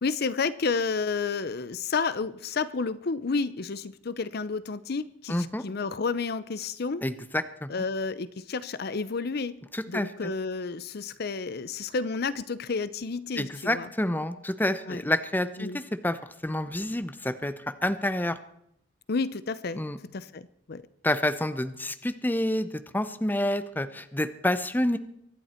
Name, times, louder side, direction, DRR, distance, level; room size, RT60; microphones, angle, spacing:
voice 1, 0.0-7.0 7.7-9.6 9.9-13.9 14.9-15.0 15.6-15.8 19.1-19.8 20.1-20.8, left 4 dB, 60° left, 15 dB, 0.6 m, -31 dB
voice 2, 5.3-5.6 7.0-7.7 9.7-10.3 13.4-17.5 17.8-18.4 19.7-20.0 21.0-25.0, left 1 dB, 10° left, 11 dB, 0.8 m, -28 dB
24.0 x 11.0 x 4.4 m, 0.74 s
head